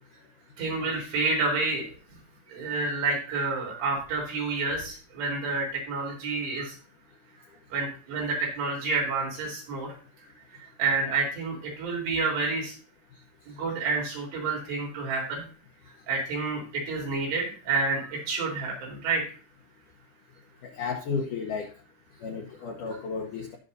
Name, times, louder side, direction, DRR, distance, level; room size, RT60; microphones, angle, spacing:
voice 1, 0.6-1.8 2.5-6.7 7.7-9.9 10.8-12.7 13.5-15.4 16.1-16.6 16.9-19.2, right 3 dB, 75° right, -2 dB, 6.2 m, -29 dB
voice 2, 20.6-21.7 22.2-23.6, left 5 dB, 80° left, 3 dB, 1.9 m, -33 dB
18.5 x 6.6 x 2.7 m, 0.40 s
omnidirectional pair, 5.0 m